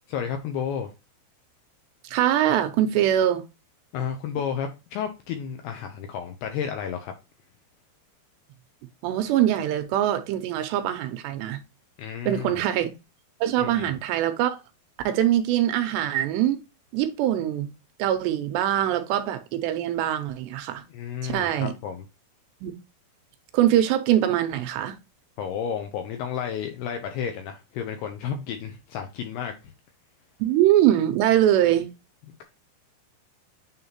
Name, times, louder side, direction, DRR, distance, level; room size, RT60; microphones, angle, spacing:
voice 1, 0.1-0.9 3.9-7.1 12.0-12.6 13.6-13.9 20.9-22.1 25.4-29.7, left 8 dB, 80° left, 2.4 m, -32 dB
voice 2, 2.0-3.4 9.0-11.6 12.3-12.9 13.4-14.6 15.1-16.6 16.9-17.7 18.0-20.8 21.2-21.7 22.6-22.7 23.5-25.0 30.4-31.9, right 12 dB, 80° right, 2.6 m, -23 dB
9.5 x 3.5 x 2.8 m
omnidirectional pair, 5.4 m